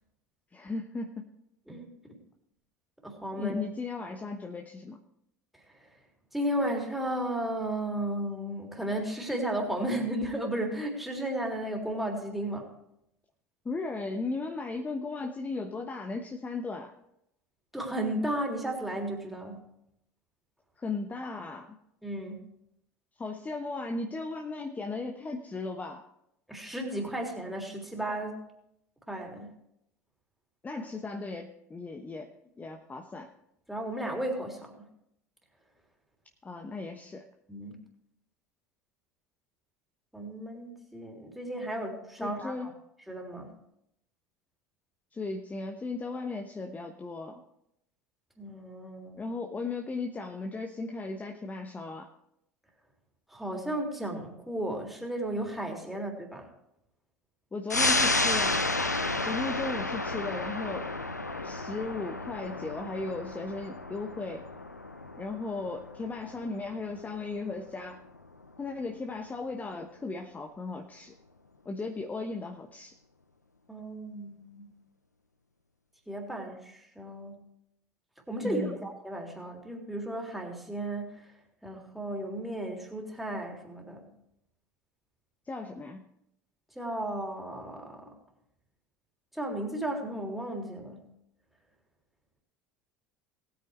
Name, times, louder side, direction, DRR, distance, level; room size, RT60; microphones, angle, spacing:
voice 1, 0.5-1.3 3.3-5.0 13.6-16.9 20.8-21.8 23.2-26.0 30.6-32.3 32.6-33.3 36.4-37.2 42.2-42.7 45.1-47.4 49.2-52.1 57.5-58.6 59.2-60.9 61.4-64.5 65.2-68.0 68.6-71.2 71.6-73.0 78.4-78.9 85.4-86.0, left 3 dB, 20° left, 4 dB, 1.1 m, -36 dB
voice 2, 1.7-2.1 3.0-3.6 5.5-5.9 6.3-12.7 17.7-19.7 22.0-22.4 26.5-28.4 29.1-29.5 33.7-34.8 37.5-37.8 40.1-42.5 43.1-43.6 48.4-49.2 53.3-56.5 73.7-74.7 76.1-77.4 78.3-81.3 81.6-84.1 86.7-88.2 89.3-91.1, right 1 dB, ahead, 0 dB, 3.4 m, -34 dB
sound 1, 57.7-68.7 69.1-69.2, left 2 dB, 90° left, 0.7 m, -32 dB
19.0 x 9.0 x 3.2 m, 0.78 s
figure-of-eight pair, 65°, 9 cm